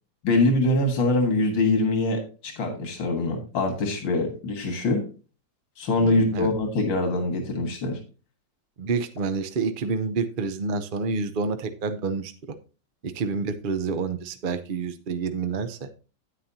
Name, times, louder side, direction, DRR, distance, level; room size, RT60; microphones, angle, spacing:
voice 1, 0.2-5.1 5.8-8.0, left 2 dB, 85° left, 4 dB, 2.5 m, -24 dB
voice 2, 6.0-6.5 8.8-12.3 13.0-15.9, right 4 dB, 60° right, 8 dB, 0.5 m, -28 dB
9.7 x 9.2 x 2.8 m, 0.34 s
omnidirectional pair, 2.0 m